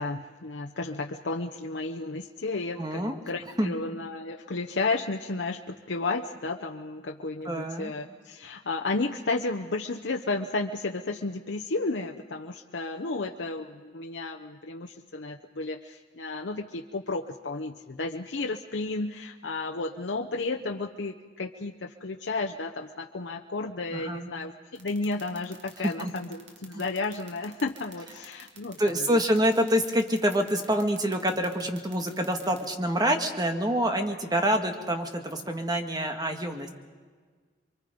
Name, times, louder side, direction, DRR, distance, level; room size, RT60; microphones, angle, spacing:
voice 1, 0.0-28.8, left 3 dB, 80° left, 3 dB, 0.8 m, -33 dB
voice 2, 2.8-3.2 3.6-3.7 7.4-7.9 23.9-24.3 25.8-26.1 26.7-26.8 28.8-36.7, equal, 20° right, 5 dB, 1.7 m, -26 dB
sound 1, 24.8-32.7, right 8 dB, 80° right, 2.3 m, -49 dB
28.0 x 23.5 x 5.2 m, 1.5 s
head